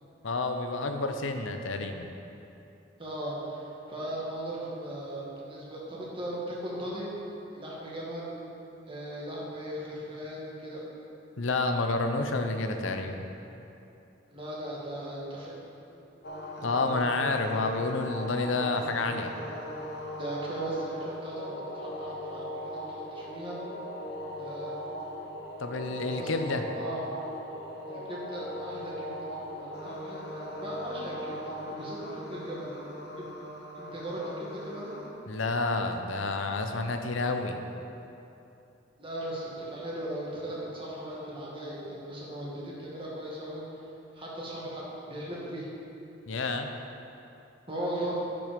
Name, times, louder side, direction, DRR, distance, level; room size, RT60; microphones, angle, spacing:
voice 1, 0.2-2.1 11.4-13.3 16.6-19.3 25.6-26.6 35.3-37.6 46.3-46.7, left 3 dB, 85° left, 6 dB, 0.7 m, -29 dB
voice 2, 3.0-7.1 7.5-8.3 8.9-10.8 14.3-15.5 15.9-16.0 20.2-23.6 24.4-24.7 26.0-26.3 26.8-27.3 27.9-32.8 33.2-33.3 33.8-34.9 39.0-43.6 44.1-45.7 47.7-48.2, right 1 dB, 30° right, -6 dB, 2.0 m, -38 dB
sound 1, 16.2-35.1, equal, 55° left, 1.1 m, -39 dB
10.5 x 6.0 x 5.2 m, 2.8 s
head